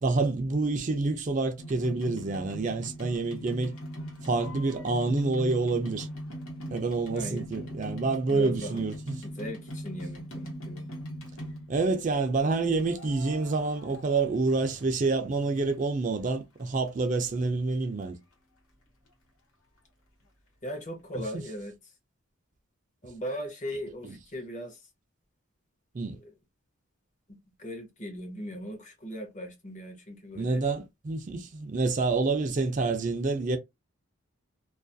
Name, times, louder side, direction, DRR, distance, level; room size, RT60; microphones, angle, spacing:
voice 1, 0.0-3.7 4.2-6.1 6.7-9.2 11.7-18.2 25.9-26.2 30.3-33.6, right 3 dB, 35° right, 0.4 m, -28 dB
sound 1, 1.6-11.9 12.7-14.8 15.1-16.1 16.6-16.7 16.9-17.0 17.2-17.3 17.7-17.8 18.0-18.1, equal, 85° left, 1.0 m, -40 dB
voice 2, 7.1-7.5 7.9-8.8 9.2-10.9 20.6-21.7 23.0-24.8 26.1-26.4 27.3-30.7, equal, 35° left, 0.7 m, -39 dB
2.3 x 2.3 x 2.5 m
head